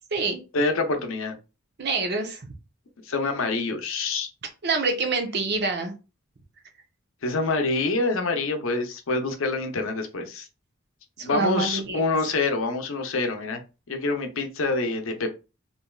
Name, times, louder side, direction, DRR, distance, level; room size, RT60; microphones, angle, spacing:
voice 1, 0.5-1.3 3.1-4.3 7.2-10.5 11.2-13.6 13.9-15.3, left 3 dB, 80° left, 5 dB, 0.6 m, -26 dB
voice 2, 1.8-2.4 4.6-5.9 11.2-12.1, right 3 dB, 55° right, 5 dB, 0.7 m, -26 dB
3.2 x 2.6 x 2.3 m, 0.30 s
head